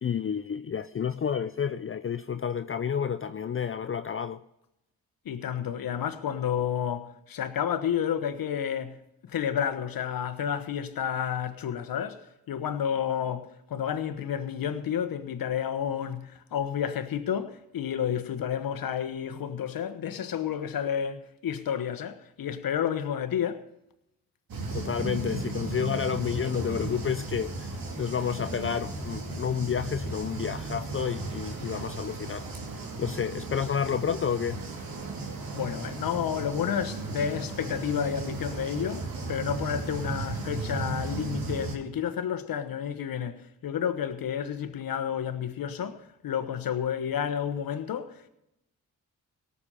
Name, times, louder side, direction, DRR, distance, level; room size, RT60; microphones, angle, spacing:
voice 1, 0.0-4.4 24.7-32.5 33.0-34.6, left 7 dB, 35° left, 0.6 m, -30 dB
voice 2, 5.2-23.6 35.5-48.3, left 8 dB, 65° left, 1.2 m, -31 dB
sound 1, 24.5-41.8, right 3 dB, 70° right, 2.6 m, -35 dB
18.0 x 7.1 x 5.6 m
supercardioid pair, 45°, 36 cm